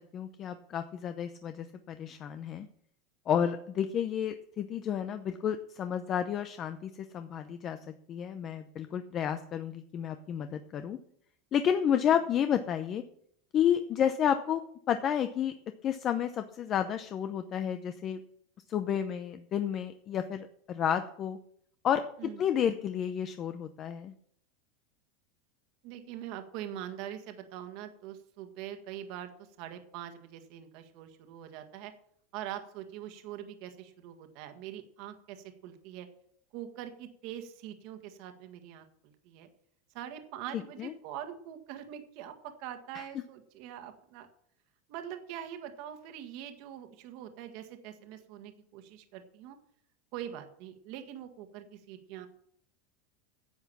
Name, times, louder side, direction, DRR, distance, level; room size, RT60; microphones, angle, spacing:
voice 1, 0.1-2.7 3.3-7.8 8.1-11.0 11.5-13.0 13.5-14.6 14.9-15.5 15.8-18.2 18.7-21.4 21.8-24.1 40.8-40.9 42.9-43.1, left 9 dB, 30° left, 9 dB, 0.7 m, -31 dB
voice 2, 25.8-31.9 32.3-36.1 36.5-39.5 39.9-44.3 44.9-49.6 50.1-52.3, right 11 dB, 50° right, 7 dB, 1.7 m, -43 dB
10.5 x 8.1 x 7.1 m, 0.68 s
supercardioid pair, 150°, 0 cm